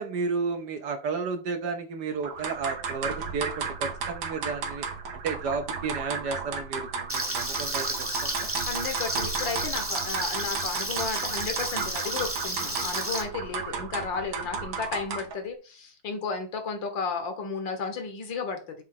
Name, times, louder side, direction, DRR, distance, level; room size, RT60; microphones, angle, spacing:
voice 1, 0.0-4.9 5.1-8.5 13.7-13.9, right 4 dB, 65° right, 6 dB, 1.3 m, -32 dB
sound 1, 2.2-15.4, right 5 dB, 80° right, 2.0 m, -34 dB
Frying (food), 7.1-13.2, right 1 dB, 10° right, 0.7 m, -32 dB
voice 2, 8.6-18.7, left 4 dB, 70° left, 5 dB, 2.0 m, -33 dB
7.2 x 3.2 x 5.7 m, 0.34 s
omnidirectional pair, 2.2 m